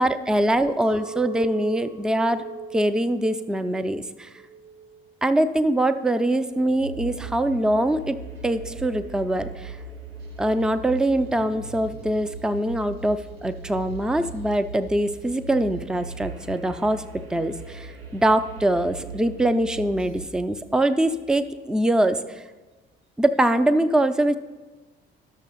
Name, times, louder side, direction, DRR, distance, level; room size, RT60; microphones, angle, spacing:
voice 1, 0.0-2.5 2.7-4.3 5.2-8.2 8.4-9.8 10.4-17.0 17.3-22.4 23.2-24.4, right 1 dB, ahead, 11 dB, 0.4 m, -23 dB
Chink clink, 0.8-5.1 5.5-6.1, right 5 dB, 60° right, 1.8 m, -39 dB
sound 1, 6.5-20.3, right 3 dB, 80° right, 0.8 m, -39 dB
12.0 x 6.5 x 4.0 m, 1.2 s
figure-of-eight pair, 50°, 30 cm